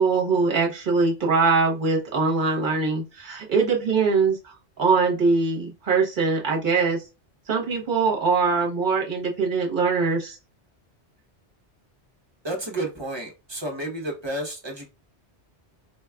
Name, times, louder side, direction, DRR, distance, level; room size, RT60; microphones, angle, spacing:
voice 1, 0.0-7.0 7.5-10.4, right 4 dB, 50° right, 1.1 m, -22 dB
voice 2, 12.4-14.9, right 1 dB, 25° right, 0.7 m, -31 dB
4.5 x 2.3 x 2.2 m
omnidirectional pair, 1.1 m